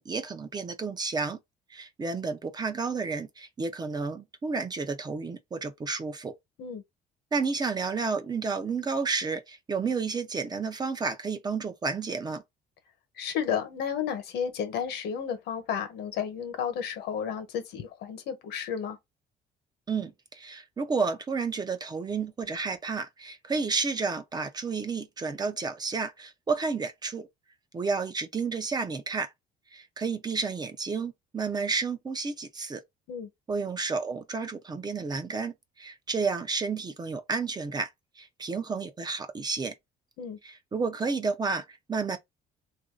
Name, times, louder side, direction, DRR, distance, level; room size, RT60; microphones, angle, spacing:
voice 1, 0.0-1.4 1.7-6.3 7.3-12.4 19.9-27.3 27.7-29.3 29.7-32.8 33.5-37.9 38.2-39.7 40.4-42.2, right 4 dB, 25° right, 0.6 m, -31 dB
voice 2, 13.2-19.0 33.1-33.3 40.2-40.4, left 8 dB, 75° left, 1.1 m, -32 dB
3.0 x 2.6 x 3.7 m
cardioid pair, 110°, 17 cm